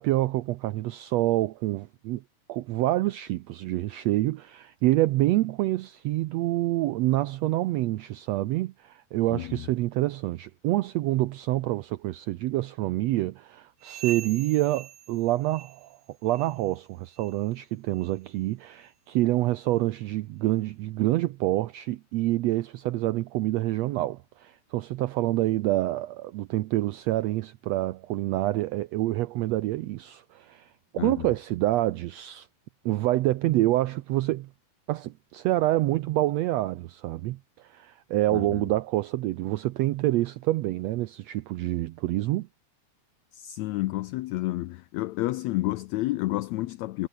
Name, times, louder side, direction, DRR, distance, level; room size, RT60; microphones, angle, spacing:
voice 1, 0.0-2.2 2.5-32.5 32.8-34.5 34.9-42.5, right 16 dB, 85° right, 1.4 m, -27 dB
voice 2, 9.3-9.7 31.0-31.3 38.3-38.7 43.3-47.1, left 18 dB, 80° left, 1.7 m, -30 dB
sound 1, 13.8-16.0 16.3-16.7 17.1-17.4 18.0-18.1 18.8-18.9 19.7-19.8, right 11 dB, 70° right, 2.9 m, -43 dB
omnidirectional pair, 3.8 m